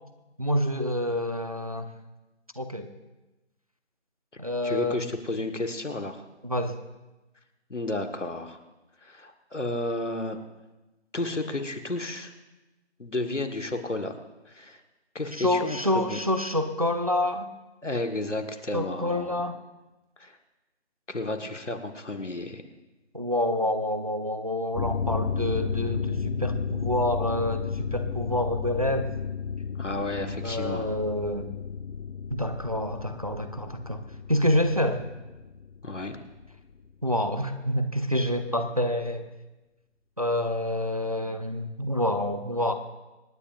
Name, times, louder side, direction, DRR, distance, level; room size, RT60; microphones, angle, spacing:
voice 1, 0.4-1.9 2.6-2.9 4.4-5.1 6.4-6.8 15.3-17.5 18.7-19.6 23.1-29.1 30.4-31.5 32.3-34.0 34.3-35.1 37.0-39.3 40.2-42.7, left 1 dB, 30° right, 8 dB, 0.6 m, -27 dB
voice 2, 4.6-6.3 7.7-8.6 9.0-10.4 11.1-12.3 13.0-14.2 14.5-14.8 15.2-15.8 16.1-16.2 17.8-19.3 20.2-20.4 21.1-22.6 29.8-31.0 35.8-36.2, left 2 dB, 80° left, 6 dB, 1.7 m, -32 dB
sound 1, 24.7-36.9 37.2-37.3, left 6 dB, 60° left, 0.7 m, -33 dB
26.5 x 10.0 x 2.6 m, 1.1 s
figure-of-eight pair, 160°, 36 cm